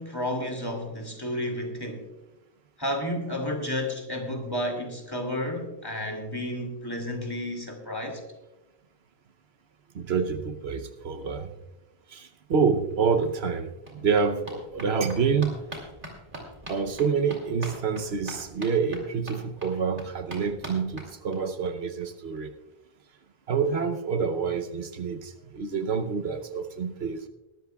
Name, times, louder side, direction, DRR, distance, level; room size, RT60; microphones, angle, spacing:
voice 1, 0.0-2.1 2.8-8.2, left 1 dB, 20° left, 2 dB, 2.4 m, -31 dB
voice 2, 9.9-11.5 12.1-15.5 16.7-22.5 23.5-27.3, right 5 dB, 70° right, 7 dB, 1.0 m, -27 dB
sound 1, 12.9-13.0 13.2-21.7 22.0-22.1 22.4-22.5 22.7-22.8, right 1 dB, 50° right, 2.9 m, -43 dB
21.0 x 12.5 x 2.3 m, 1.0 s
omnidirectional pair, 1.1 m